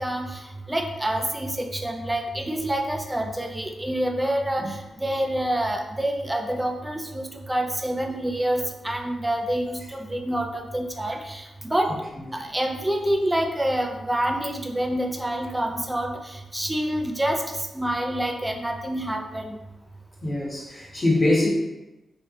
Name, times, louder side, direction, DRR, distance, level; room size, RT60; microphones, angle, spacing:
voice 1, 0.0-11.9 12.3-19.6, right 1 dB, 10° right, 3 dB, 0.5 m, -27 dB
voice 2, 20.2-21.5, left 2 dB, 30° left, -4 dB, 1.2 m, -23 dB
3.2 x 2.8 x 3.7 m, 1.0 s
cardioid pair, 90°, 0 cm